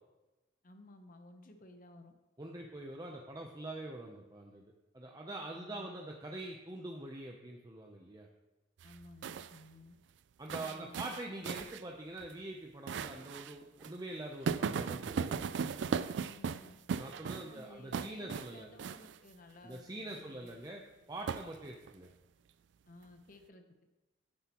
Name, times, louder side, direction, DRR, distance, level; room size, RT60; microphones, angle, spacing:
voice 1, 0.6-2.1 5.5-5.9 8.8-10.0 10.5-11.2 16.3-16.8 17.4-20.5 22.9-23.6, left 2 dB, 45° left, 6 dB, 0.8 m, -56 dB
voice 2, 2.4-4.6 4.9-8.3 10.4-15.5 17.0-18.7 19.6-20.8 21.1-22.1, right 1 dB, 20° right, 1 dB, 0.6 m, -44 dB
sound 1, 8.8-9.6 10.5-11.8 12.2-12.3 12.9-13.5 13.8-13.9 14.5-17.6 17.9-18.5 18.8-19.2 21.3-21.9, right 6 dB, 65° right, 0.3 m, -37 dB
9.9 x 9.3 x 3.0 m, 1.1 s
head